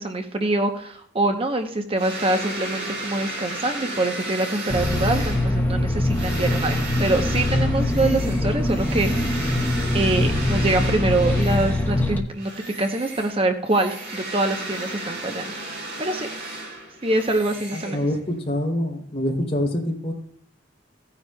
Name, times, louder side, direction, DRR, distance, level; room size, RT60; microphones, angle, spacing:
voice 1, 0.0-9.5 9.9-15.6 16.0-16.3 17.0-18.0, right 2 dB, 30° right, 6 dB, 0.8 m, -25 dB
sound 1, 2.0-12.0 12.4-18.4, right 2 dB, 65° right, 4.5 m, -34 dB
sound 2, 4.7-12.2, left 1 dB, 10° left, 1.2 m, -23 dB
voice 2, 17.7-20.1, left 1 dB, 35° left, 1 dB, 3.2 m, -25 dB
16.5 x 9.8 x 2.3 m, 0.63 s
head